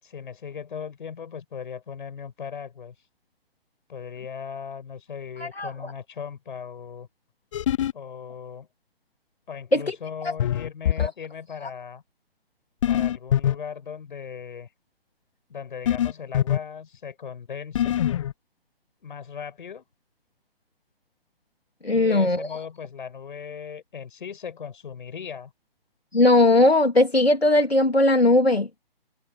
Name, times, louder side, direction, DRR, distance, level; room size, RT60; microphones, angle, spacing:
voice 1, 0.0-3.0 3.9-7.1 7.9-8.7 9.5-12.0 12.9-14.7 15.5-18.0 19.0-19.8 21.9-25.5, left 7 dB, 55° left, 7.2 m, -38 dB
sound 1, 7.5-7.9 10.4-11.1 12.8-13.5 15.8-16.6 17.7-18.3, left 11 dB, 35° left, 0.7 m, -23 dB
voice 2, 21.8-22.5 26.1-28.7, left 2 dB, 85° left, 3.1 m, -19 dB
figure-of-eight pair, 135°, 30 cm